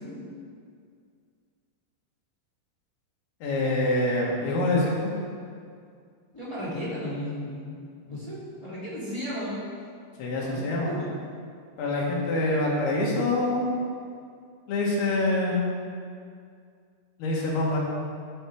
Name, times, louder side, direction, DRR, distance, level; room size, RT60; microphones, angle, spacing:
voice 1, 3.4-5.1 10.2-10.9 11.8-13.7 14.7-15.6 17.2-17.8, left 2 dB, 75° left, -4 dB, 3.4 m, -25 dB
voice 2, 6.3-7.8 8.0-9.6 10.4-10.6 10.9-11.1, equal, 10° left, -9 dB, 1.6 m, -34 dB
14.0 x 4.8 x 4.6 m, 2.2 s
omnidirectional pair, 4.7 m